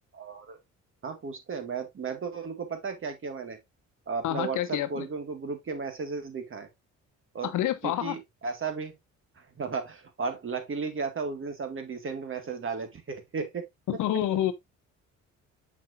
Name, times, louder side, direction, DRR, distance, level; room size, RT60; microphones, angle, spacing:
voice 1, 0.1-0.6 1.0-3.6 4.1-6.7 7.3-7.5 7.8-8.9 9.4-13.6 13.9-14.0, right 5 dB, 45° right, 2.1 m, -34 dB
voice 2, 4.2-5.1 7.4-8.2 13.9-14.5, left 12 dB, 80° left, 1.1 m, -28 dB
7.2 x 5.9 x 2.6 m
cardioid pair, 90°, 30 cm